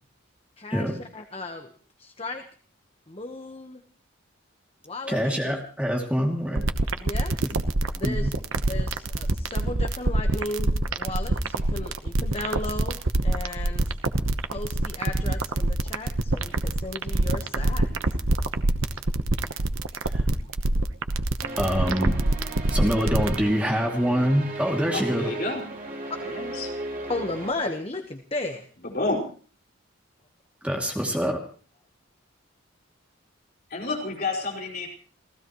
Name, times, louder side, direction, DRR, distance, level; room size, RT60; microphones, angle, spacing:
voice 1, 0.6-1.7 2.0-2.4 3.1-3.8 4.8-5.6 7.0-7.4 7.9-8.3 8.6-13.9 14.5-17.9 20.0-20.2 26.2-26.3 27.1-28.7, left 2 dB, 25° left, 6 dB, 1.2 m, -35 dB
voice 2, 5.1-6.7 8.0-8.3 20.1-20.2 21.6-22.1 22.7-25.3 30.6-31.4, equal, 5° right, 0 dB, 2.5 m, -25 dB
sound 1, 6.5-23.4, right 2 dB, 70° right, 1.1 m, -24 dB
sound 2, 21.4-27.5, right 2 dB, 45° right, 3.6 m, -36 dB
voice 3, 24.9-25.6 26.2-26.7 28.8-29.3 33.7-34.9, left 3 dB, 45° left, 0 dB, 5.4 m, -30 dB
29.0 x 16.0 x 3.1 m, 0.41 s
head